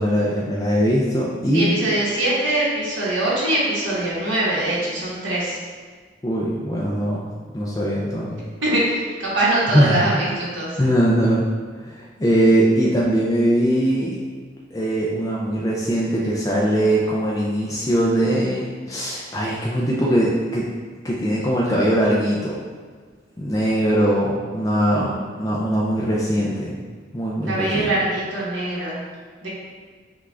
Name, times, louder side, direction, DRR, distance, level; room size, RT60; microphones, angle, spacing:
voice 1, 0.0-1.8 6.2-7.2 7.5-8.4 9.7-10.0 10.8-11.5 11.8-14.2 14.7-20.7 21.0-22.6 23.4-26.8 27.1-27.9, right 1 dB, 20° left, -5 dB, 0.4 m, -21 dB
voice 2, 1.5-5.6 8.6-10.9 24.9-25.2 27.4-29.0 29.4-29.5, right 1 dB, 90° right, -7 dB, 1.5 m, -23 dB
5.8 x 2.4 x 3.3 m, 1.5 s
head